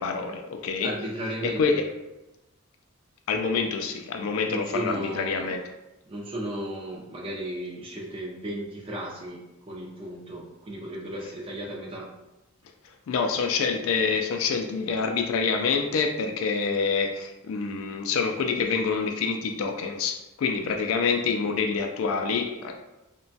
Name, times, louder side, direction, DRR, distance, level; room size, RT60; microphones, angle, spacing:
voice 1, 0.0-0.9 1.4-1.8 3.3-5.6 12.8-22.8, left 5 dB, 70° left, 4 dB, 0.3 m, -27 dB
voice 2, 0.8-1.8 4.5-5.5 6.1-9.4 9.7-12.1, right 1 dB, 25° right, -2 dB, 0.4 m, -35 dB
2.9 x 2.2 x 2.6 m, 0.99 s
head